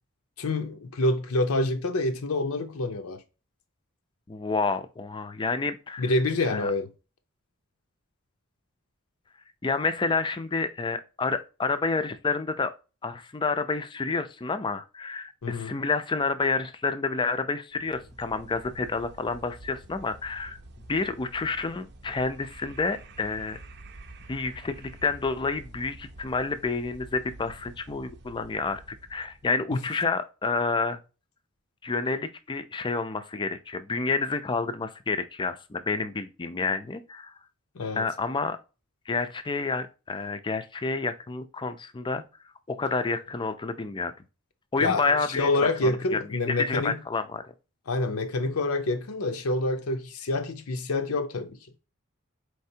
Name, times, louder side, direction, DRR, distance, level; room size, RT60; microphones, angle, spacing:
voice 1, 0.4-3.2 6.0-6.9 15.4-15.7 29.7-29.8 37.8-38.1 44.8-45.1 45.4-47.0 47.9-51.6, left 2 dB, 75° left, 0.6 m, -27 dB
voice 2, 4.3-6.1 6.5-6.7 9.6-12.7 13.0-20.6 20.9-23.6 24.3-31.0 31.8-37.3 37.9-38.6 39.1-42.2 42.7-44.1 44.7-46.2 46.5-47.4, left 4 dB, 20° left, 0.4 m, -29 dB
sound 1, 17.7-29.6, right 2 dB, 50° right, 0.6 m, -48 dB
4.6 x 3.3 x 2.7 m
head